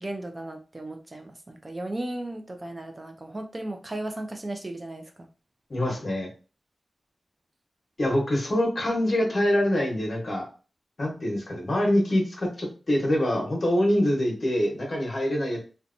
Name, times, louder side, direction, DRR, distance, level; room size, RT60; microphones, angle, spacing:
voice 1, 0.0-5.3, right 1 dB, 30° right, 4 dB, 0.4 m, -35 dB
voice 2, 5.7-6.3 8.0-10.5 11.0-15.6, left 1 dB, 50° left, -1 dB, 1.0 m, -25 dB
2.7 x 2.2 x 2.5 m, 0.36 s
wide cardioid pair, 70°, 0 cm